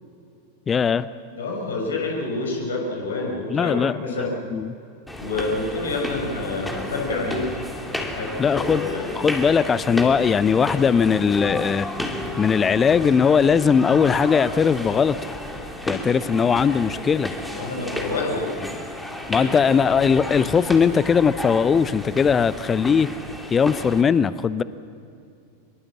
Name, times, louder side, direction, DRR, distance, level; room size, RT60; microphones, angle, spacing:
voice 1, 0.7-1.1 3.5-4.0 4.5-4.7 8.4-8.9 9.2-11.9 12.4-15.2 15.9-17.3 19.3-23.1 23.5-24.6, left 6 dB, 20° left, 17 dB, 0.7 m, -19 dB
voice 2, 1.3-4.3 5.2-7.4 8.1-9.1 17.5-18.5 19.4-19.7, left 3 dB, 65° left, 0 dB, 6.2 m, -28 dB
sound 1, 5.1-24.0, left 1 dB, 5° left, 2.7 m, -32 dB
24.5 x 23.0 x 7.5 m, 2.5 s
figure-of-eight pair, 90°, 0 cm